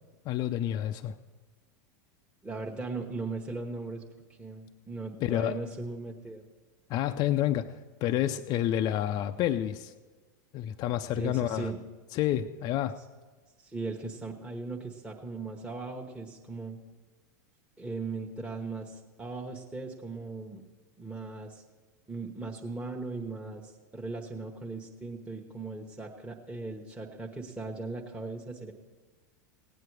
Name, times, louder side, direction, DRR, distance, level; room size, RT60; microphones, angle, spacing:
voice 1, 0.3-1.2 5.2-5.6 6.9-9.9 10.5-11.7 12.1-13.0, left 12 dB, 40° left, 7 dB, 0.4 m, -29 dB
voice 2, 2.4-4.0 4.4-6.5 11.2-11.8 13.6-16.8 17.8-20.6 21.0-21.6 22.1-28.7, right 3 dB, 10° right, -1 dB, 1.1 m, -38 dB
17.0 x 9.1 x 4.8 m, 1.3 s
hypercardioid pair, 95°, 10 cm